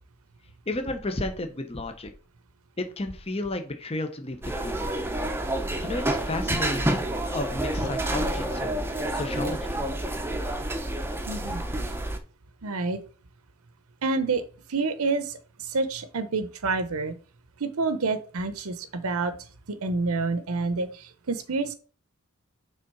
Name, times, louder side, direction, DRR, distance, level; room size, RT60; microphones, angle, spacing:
voice 1, 0.7-2.1 2.8-4.8 5.8-6.9 7.2-8.7 9.1-9.8, left 2 dB, 25° left, 7 dB, 0.9 m, -32 dB
sound 1, 4.4-12.2, right 1 dB, 10° right, 0.7 m, -29 dB
voice 2, 11.3-11.6 12.6-13.0 14.0-14.4 14.7-17.1 17.6-19.3 19.7-21.7, right 3 dB, 80° right, 11 dB, 0.8 m, -28 dB
6.3 x 3.8 x 5.5 m, 0.37 s
head